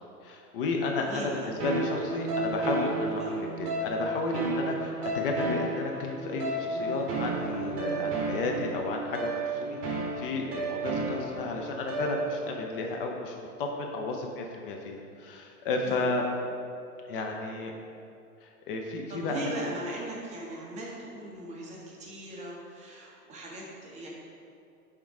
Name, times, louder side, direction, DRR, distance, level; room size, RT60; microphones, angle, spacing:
voice 1, 0.0-1.3 1.6-16.2 17.0-17.7 18.4-19.7, left 3 dB, 35° left, 1 dB, 0.6 m, -33 dB
voice 2, 1.1-1.5 3.2-3.4 15.8-16.1 19.1-24.1, right 1 dB, 15° right, -3 dB, 0.7 m, -39 dB
sound 1, 1.6-12.6, right 2 dB, 30° right, 1.2 m, -32 dB
6.9 x 3.7 x 4.7 m, 2.5 s
figure-of-eight pair, 105°, 46 cm